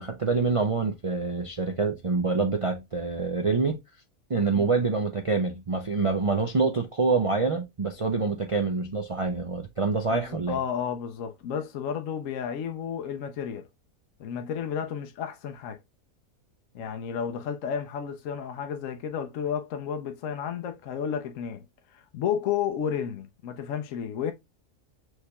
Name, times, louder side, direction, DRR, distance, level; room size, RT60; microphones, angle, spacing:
voice 1, 0.0-3.8 4.3-10.6, right 4 dB, 50° right, 0.4 m, -26 dB
voice 2, 10.1-13.7 14.2-15.8 16.7-24.3, left 8 dB, 70° left, 1.0 m, -32 dB
6.4 x 3.2 x 2.2 m
omnidirectional pair, 1.5 m